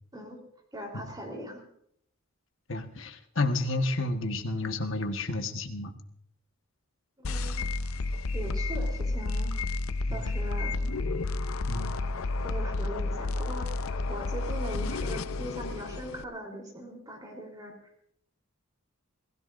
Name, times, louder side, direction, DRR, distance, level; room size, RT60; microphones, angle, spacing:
voice 1, 0.7-1.6 7.2-7.7 8.3-9.5 10.1-10.8 12.4-17.8, equal, 20° right, 0 dB, 3.7 m, -40 dB
voice 2, 2.7-5.9 10.1-10.3 11.7-12.0, left 2 dB, 60° left, 5 dB, 1.4 m, -31 dB
sound 1, 7.2-16.2, left 2 dB, 80° left, 0.6 m, -31 dB
28.0 x 16.5 x 2.6 m, 0.70 s
head